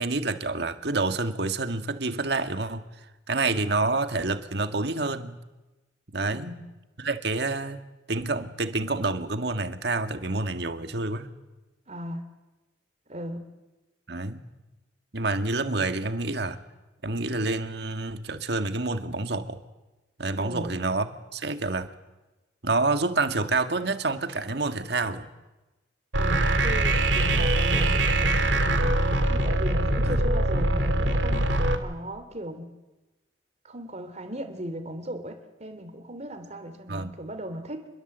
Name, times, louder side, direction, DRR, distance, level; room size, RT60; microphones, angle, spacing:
voice 1, 0.0-2.9 3.3-5.4 6.1-6.5 7.0-7.8 8.1-11.3 14.1-14.5 15.1-16.6 17.0-19.6 20.2-21.9 22.6-25.3 30.0-30.2 36.9-37.1, right 3 dB, 65° right, 8 dB, 1.7 m, -28 dB
voice 2, 6.3-6.6 11.9-12.2 13.1-13.5 20.4-20.7 26.2-31.5 31.8-32.7 33.6-37.9, equal, 40° right, 8 dB, 3.3 m, -37 dB
sound 1, 26.1-31.8, right 1 dB, 85° right, 2.2 m, -23 dB
27.0 x 22.0 x 8.0 m, 1.1 s
head